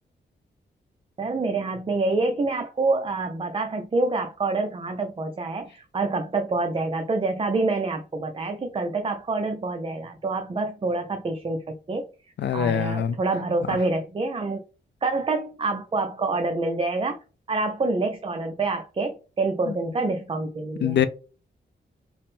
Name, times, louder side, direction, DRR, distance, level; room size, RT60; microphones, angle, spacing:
voice 1, 1.2-12.1 12.5-14.6 15.0-17.2 17.5-21.0, right 3 dB, 30° right, 0.4 m, -27 dB
voice 2, 12.4-13.2 19.7-19.8 20.0-20.1 20.8-21.1, left 8 dB, 70° left, 0.4 m, -24 dB
3.5 x 2.1 x 4.1 m
cardioid pair, 75°, 19 cm